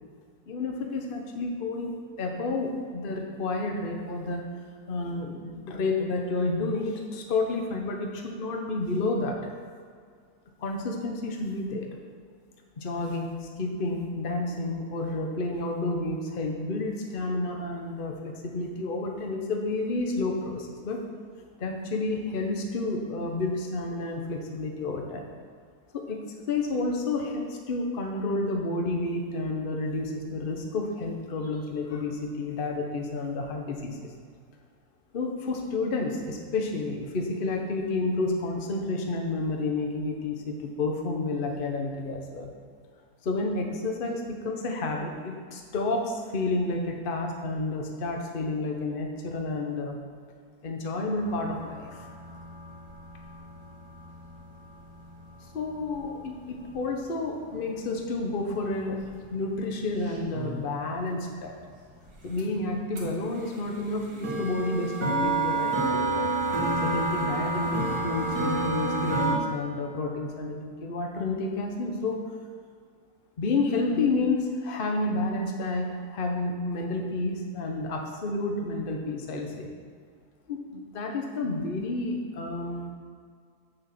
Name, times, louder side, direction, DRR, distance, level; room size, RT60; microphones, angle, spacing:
voice 1, 0.5-1.9 2.2-4.4 4.9-9.5 10.6-11.9 12.8-21.0 21.6-25.3 25.9-26.2 26.5-34.1 35.1-42.5 43.2-50.0 50.6-52.1 55.5-61.5 62.2-66.3 66.8-72.2 73.4-79.7 80.5-82.9, left 2 dB, 40° left, 2 dB, 1.1 m, -30 dB
sound 1, 51.2-56.7 58.4-58.5 59.0-59.1 59.3-60.8 62.1-62.2 62.4-62.5 63.0-69.4, right 2 dB, 80° right, 2.2 m, -30 dB
6.8 x 6.4 x 7.4 m, 2.1 s
omnidirectional pair, 1.7 m